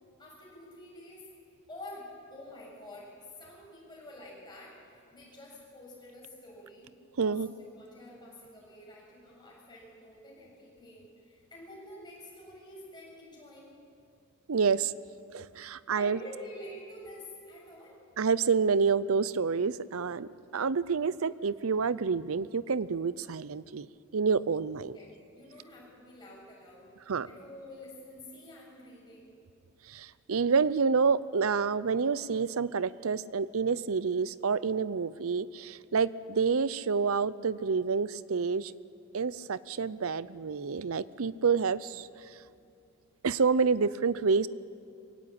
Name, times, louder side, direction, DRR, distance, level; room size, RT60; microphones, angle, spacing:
voice 1, 0.2-1.2 1.7-3.1 3.4-6.9 7.2-13.8 15.9-18.0 24.9-26.9 27.2-29.4, left 1 dB, 20° left, -5 dB, 7.6 m, -48 dB
voice 2, 7.2-7.5 14.5-14.9 15.3-16.2 18.2-23.9 24.1-24.9 27.1-27.3 29.9-38.7 39.1-42.1 43.2-44.5, right 5 dB, 70° right, 18 dB, 0.6 m, -28 dB
22.5 x 17.0 x 8.8 m, 2.5 s
head